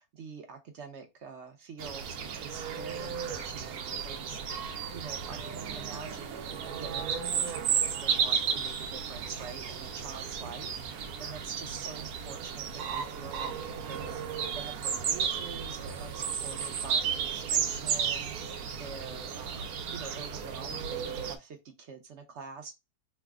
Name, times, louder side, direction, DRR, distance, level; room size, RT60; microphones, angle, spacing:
voice 1, 0.0-13.6 13.8-14.3 14.6-22.7, right 5 dB, 60° right, 0.8 m, -46 dB
sound 1, 1.8-21.4, right 7 dB, 75° right, 1.1 m, -33 dB
3.2 x 2.0 x 3.5 m
omnidirectional pair, 1.7 m